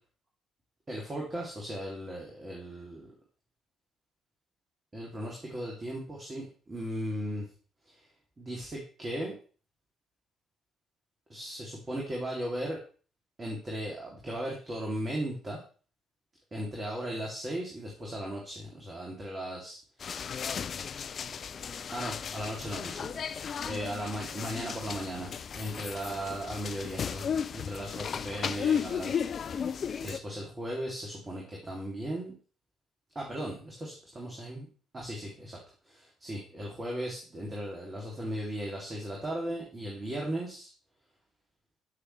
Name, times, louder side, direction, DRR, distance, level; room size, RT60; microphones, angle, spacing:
voice 1, 0.9-3.1 4.9-7.5 7.9-8.0 8.4-9.3 11.3-12.8 13.4-15.6 16.5-19.8 21.9-23.3 23.6-29.1 29.5-32.3 33.1-34.7 34.9-35.6 35.8-40.7, right 1 dB, 30° right, -2 dB, 2.9 m, -37 dB
sound 1, 20.0-30.2, left 7 dB, 45° left, 0.5 m, -35 dB
13.5 x 6.5 x 3.3 m, 0.39 s
figure-of-eight pair, 45°, 0 cm